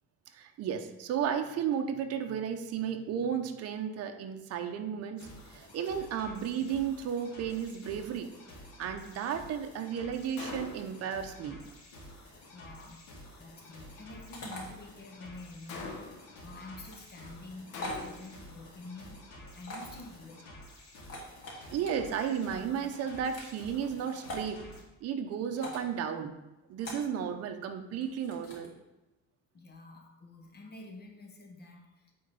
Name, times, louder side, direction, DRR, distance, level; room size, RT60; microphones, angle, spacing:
voice 1, 0.3-8.3 8.8-11.6 21.7-24.6 25.0-26.3 26.7-28.7, right 8 dB, 55° right, 6 dB, 0.7 m, -34 dB
sound 1, 5.2-24.8, left 1 dB, 70° left, 2.2 m, -51 dB
Gunshot gunfire, 10.4-11.1 15.7-16.4 17.7-18.4, left 4 dB, 90° left, 1.3 m, -42 dB
voice 2, 12.5-13.0 13.4-20.5 29.5-32.1, left 2 dB, 35° left, 2 dB, 1.1 m, -48 dB
sound 2, 14.3-14.6 16.8-17.0 17.7-18.0 19.6-20.0 21.0-21.9 22.9-23.5 24.2-24.5 25.5-25.9 26.8-27.1 28.0-28.7, left 1 dB, 50° left, 2.0 m, -42 dB
8.7 x 3.9 x 4.0 m, 1.0 s
cardioid pair, 140°, 29 cm